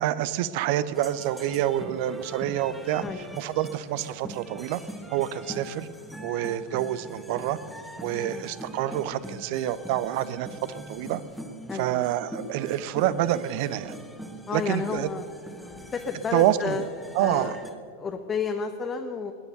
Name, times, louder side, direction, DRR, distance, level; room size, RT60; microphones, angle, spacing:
voice 1, 0.0-4.8 5.1-5.9 6.2-7.6 8.0-11.2 11.7-14.0 14.5-15.1 16.3-16.8 17.1-17.6, right 12 dB, 45° right, 16 dB, 0.6 m, -27 dB
sound 1, 0.9-17.7, equal, ahead, 1.5 m, -43 dB
voice 2, 3.0-3.3 8.1-8.5 11.7-12.0 14.5-15.3 15.6-16.9 17.2-17.6 18.0-19.3, left 5 dB, 20° left, 5 dB, 0.8 m, -32 dB
20.5 x 10.5 x 6.7 m, 2.3 s
figure-of-eight pair, 90°, 0 cm